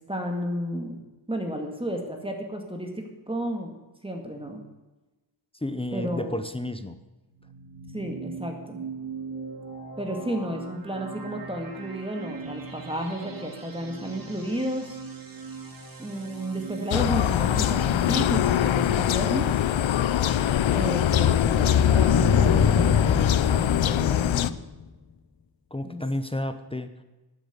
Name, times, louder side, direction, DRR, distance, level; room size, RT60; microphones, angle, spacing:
voice 1, 0.1-1.0 1.3-3.7 4.0-4.6 5.9-6.3 7.9-8.8 10.0-15.0 16.0-19.6 20.7-24.6 25.8-26.0, equal, 10° right, 2 dB, 2.0 m, -32 dB
voice 2, 5.6-7.0 25.7-27.0, left 1 dB, 10° left, 9 dB, 0.8 m, -31 dB
sound 1, 7.2-19.8, right 4 dB, 45° right, 2.4 m, -41 dB
sound 2, 16.9-24.5, left 11 dB, 75° left, 0.7 m, -23 dB
sound 3, 19.5-24.8, left 6 dB, 50° left, 1.1 m, -26 dB
12.0 x 9.3 x 8.0 m, 1.1 s
wide cardioid pair, 130°, 46 cm